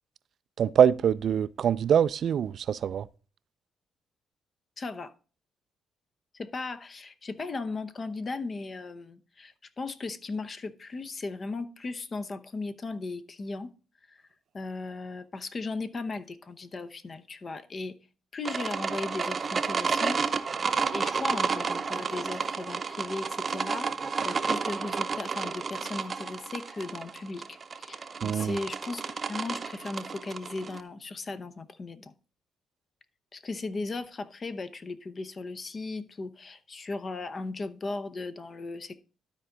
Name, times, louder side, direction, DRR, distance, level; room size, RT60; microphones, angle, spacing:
voice 1, 0.6-3.1 28.2-28.6, right 8 dB, 60° right, 0.3 m, -24 dB
voice 2, 4.8-5.1 6.3-13.7 14.1-14.2 14.5-18.0 18.3-20.2 20.9-29.0 29.3-32.1 33.3-39.0, left 3 dB, 35° left, 0.8 m, -37 dB
sound 1, 18.5-30.8, right 5 dB, 40° right, 0.7 m, -31 dB
12.5 x 4.5 x 3.8 m
cardioid pair, 90°, 0 cm